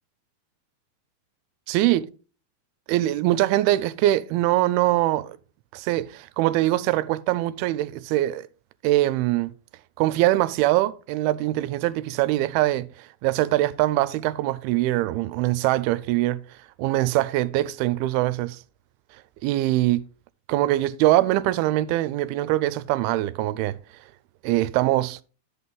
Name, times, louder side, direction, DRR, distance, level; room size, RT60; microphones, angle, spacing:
voice 1, 1.7-2.1 2.9-5.4 5.7-8.5 8.8-9.5 10.0-16.4 16.8-18.6 19.4-20.0 20.5-23.8 24.4-25.2, right 16 dB, 85° right, 2.5 m, -23 dB
11.0 x 4.2 x 5.4 m
omnidirectional pair, 4.4 m